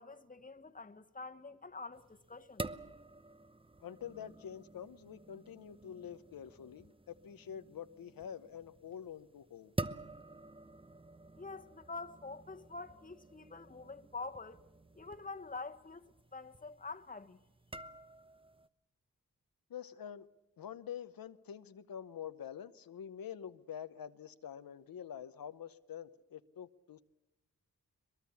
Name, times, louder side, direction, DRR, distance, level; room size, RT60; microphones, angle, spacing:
voice 1, 0.0-2.7 11.4-14.6 14.9-17.4, left 3 dB, 25° left, 1.4 m, -46 dB
sound 1, 1.9-18.7, right 2 dB, 15° right, 0.9 m, -48 dB
voice 2, 3.8-9.7 19.7-20.3 20.6-27.0, left 9 dB, 90° left, 0.9 m, -47 dB
22.5 x 22.0 x 7.1 m
cardioid pair, 55°, 34 cm